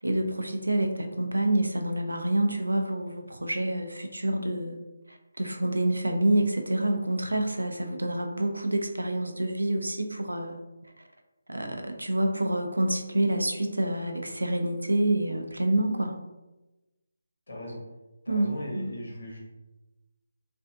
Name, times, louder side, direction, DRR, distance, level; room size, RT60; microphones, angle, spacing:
voice 1, 0.0-4.8 5.1-10.6 10.8-11.1 11.5-16.2 18.3-19.0, right 1 dB, 85° right, 4 dB, 0.4 m, -27 dB
voice 2, 17.5-17.8 18.2-19.4, left 1 dB, 70° left, -2 dB, 1.0 m, -38 dB
3.2 x 2.5 x 2.4 m, 1.1 s
figure-of-eight pair, 150°, 0 cm